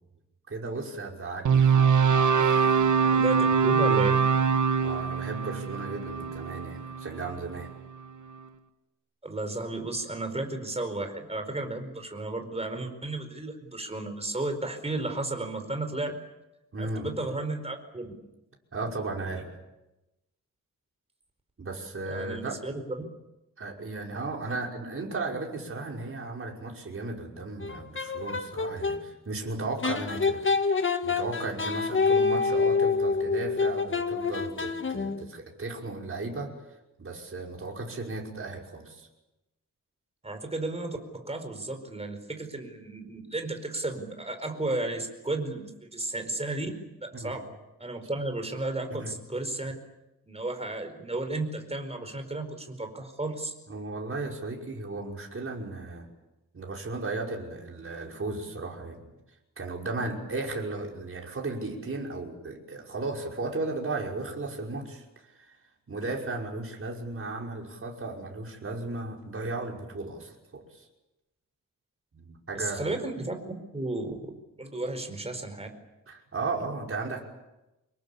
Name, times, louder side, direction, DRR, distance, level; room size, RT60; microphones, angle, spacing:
voice 1, 0.5-1.9 2.4-3.0 4.8-7.7 16.7-17.1 18.7-19.5 21.6-22.6 23.6-30.5 31.0-36.5 37.0-39.1 47.1-47.4 48.9-49.1 53.7-56.1 56.5-59.1 59.6-65.0 65.4-65.6 65.9-70.9 72.1-72.9 76.1-77.2, right 3 dB, 40° right, 0 dB, 5.6 m, -35 dB
sound 1, 1.4-7.7, right 6 dB, 65° right, 1.8 m, -23 dB
voice 2, 3.1-4.2 9.2-16.1 16.8-18.1 22.1-22.8 40.2-46.7 47.0-47.5 47.8-49.7 50.3-53.5 72.5-74.3 74.6-75.7, right 2 dB, 20° right, 6 dB, 4.8 m, -33 dB
sound 2, 27.6-29.0 29.8-35.3, left 4 dB, 35° left, 1.8 m, -27 dB
26.0 x 22.0 x 8.6 m, 0.96 s
wide cardioid pair, 120°, 33 cm